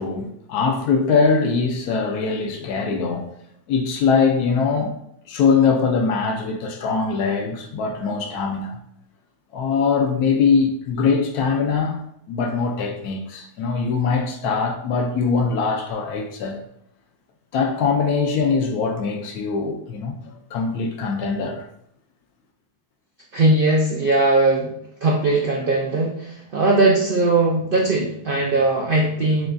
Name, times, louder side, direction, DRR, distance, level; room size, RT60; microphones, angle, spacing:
voice 1, 0.0-3.3 3.7-4.9 5.3-8.8 9.5-16.6 17.5-20.2 20.5-21.7, left 5 dB, 75° left, 1.1 m, -22 dB
voice 2, 23.3-24.7 25.0-29.5, right 2 dB, 75° right, 0.4 m, -19 dB
5.9 x 2.3 x 2.5 m
omnidirectional pair, 1.7 m